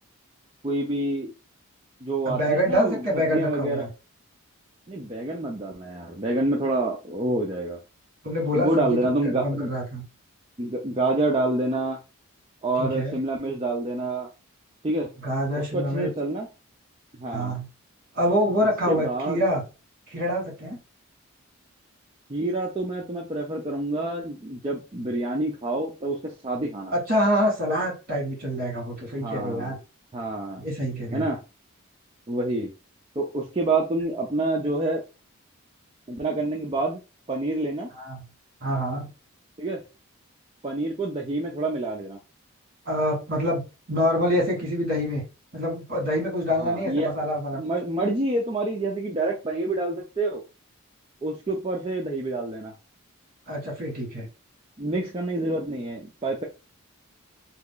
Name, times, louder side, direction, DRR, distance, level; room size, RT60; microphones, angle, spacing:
voice 1, 0.6-1.3 2.0-3.9 4.9-7.8 8.5-9.7 10.6-12.0 12.6-14.3 14.8-15.1 15.6-16.5 17.2-17.5 18.9-19.4 22.3-26.9 29.2-29.7 30.1-30.7 31.1-31.4 32.3-32.7 33.2-35.0 36.1-37.0 37.3-37.9 39.6-39.8 40.6-42.2 46.6-50.4 51.2-52.7 54.8-56.4, right 2 dB, 25° right, -2 dB, 0.5 m, -27 dB
voice 2, 2.2-3.9 8.2-9.1 9.4-10.0 12.8-13.2 15.2-16.1 17.3-17.6 18.1-19.6 20.1-20.8 26.9-29.8 30.6-31.3 37.9-38.2 38.6-39.1 42.8-43.6 43.9-45.2 45.5-47.6 53.5-54.3, equal, 45° right, -1 dB, 1.6 m, -26 dB
2.9 x 2.3 x 3.7 m, 0.30 s
head